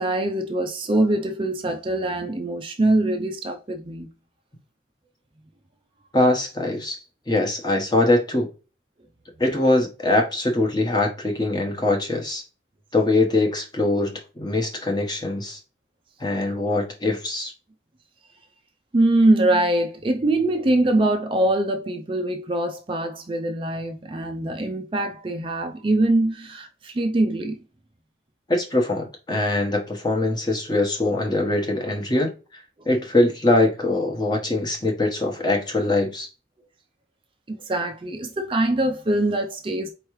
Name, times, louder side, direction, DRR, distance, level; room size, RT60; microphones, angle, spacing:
voice 1, 0.0-4.1 18.9-27.6 37.5-39.9, right 1 dB, 30° right, 0.4 m, -23 dB
voice 2, 6.1-7.0 7.3-8.5 9.4-12.4 12.9-15.6 16.2-17.5 28.5-32.3 32.9-36.3, left 2 dB, 20° left, 1.0 m, -22 dB
4.5 x 3.1 x 3.1 m
head